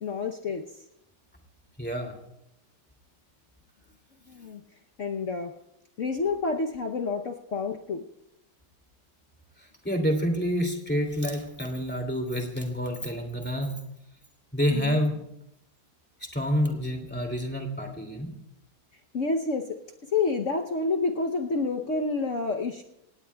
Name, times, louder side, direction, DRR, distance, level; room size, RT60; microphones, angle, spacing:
voice 1, 0.0-0.6 4.3-4.6 5.0-5.5 6.0-8.1 14.7-15.0 19.1-19.8 20.1-22.8, left 4 dB, 55° left, 3 dB, 1.0 m, -28 dB
voice 2, 1.8-2.1 9.8-13.8 14.5-15.2 16.2-18.3, equal, 5° left, 2 dB, 2.4 m, -28 dB
27.0 x 18.0 x 2.3 m, 0.82 s
omnidirectional pair, 2.1 m